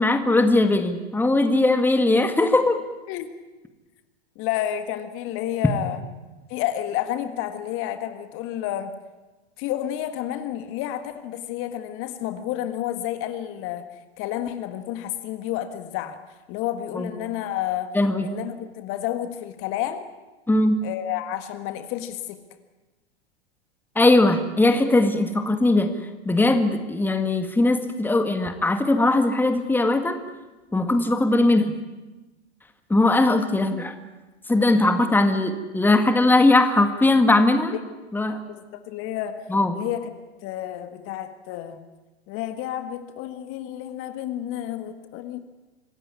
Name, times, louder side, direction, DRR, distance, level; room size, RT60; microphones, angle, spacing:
voice 1, 0.0-2.8 16.9-17.1 17.9-18.3 20.5-20.8 24.0-25.9 26.3-30.2 30.7-31.8 32.9-33.9 34.5-37.8 38.1-38.4 39.5-39.7, left 2 dB, 5° left, 8 dB, 1.9 m, -20 dB
voice 2, 4.4-6.0 6.5-8.9 9.6-13.8 14.2-16.2 16.5-17.9 18.2-20.0 20.8-22.4 37.7-37.8 38.5-39.5 39.7-40.1 40.4-41.8 42.3-45.4, left 12 dB, 40° left, 10 dB, 1.7 m, -30 dB
26.0 x 15.0 x 9.7 m, 1.2 s
hypercardioid pair, 100°, 33 cm